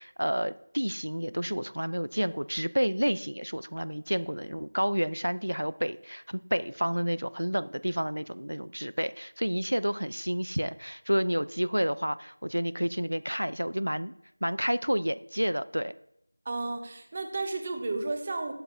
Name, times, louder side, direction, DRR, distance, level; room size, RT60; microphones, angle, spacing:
voice 1, 0.0-14.1 14.4-15.9, equal, 80° right, 15 dB, 0.5 m, -30 dB
voice 2, 16.4-18.5, right 3 dB, 20° right, 6 dB, 0.9 m, -32 dB
14.5 x 12.0 x 2.7 m, 0.75 s
figure-of-eight pair, 175°, 0 cm